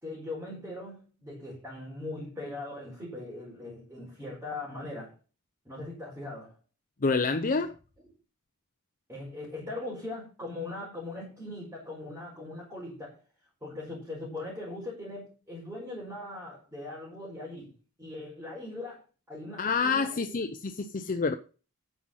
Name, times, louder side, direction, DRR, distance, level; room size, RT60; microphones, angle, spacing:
voice 1, 0.0-5.1 5.6-6.5 9.1-13.2 13.6-17.7 18.0-20.4, left 2 dB, 10° right, 4.6 m, -40 dB
voice 2, 7.0-7.7 19.6-21.4, left 4 dB, 40° left, 0.6 m, -28 dB
10.0 x 6.2 x 5.6 m
head